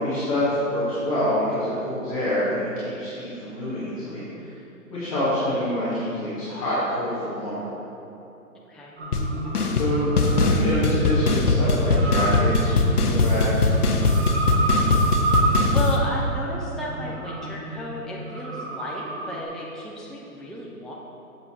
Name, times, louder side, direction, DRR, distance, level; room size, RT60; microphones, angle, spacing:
voice 1, 0.0-4.5 4.9-7.7 9.7-13.7, left 1 dB, 25° left, -13 dB, 1.8 m, -26 dB
sound 1, 9.0-19.4, right 2 dB, 45° right, 1.2 m, -30 dB
sound 2, 9.1-9.3 9.5-9.9 10.2-16.0, left 2 dB, 80° left, 1.1 m, -21 dB
voice 2, 14.8-15.3 15.7-20.9, equal, ahead, -4 dB, 0.3 m, -34 dB
7.7 x 7.6 x 4.5 m, 2.9 s
hypercardioid pair, 170°, 45 cm